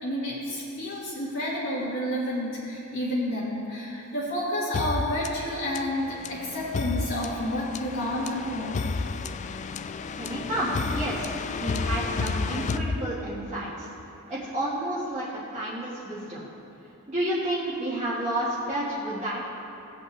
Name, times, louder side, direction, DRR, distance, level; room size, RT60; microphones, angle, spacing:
voice 1, 0.0-8.8, left 1 dB, 65° left, -9 dB, 1.9 m, -30 dB
sound 1, 4.7-13.6, left 4 dB, 35° left, 0.3 m, -32 dB
voice 2, 10.2-11.3 11.6-13.9 14.3-16.5 17.1-19.4, right 1 dB, 30° right, -10 dB, 1.7 m, -30 dB
18.5 x 8.1 x 3.3 m, 3.0 s
head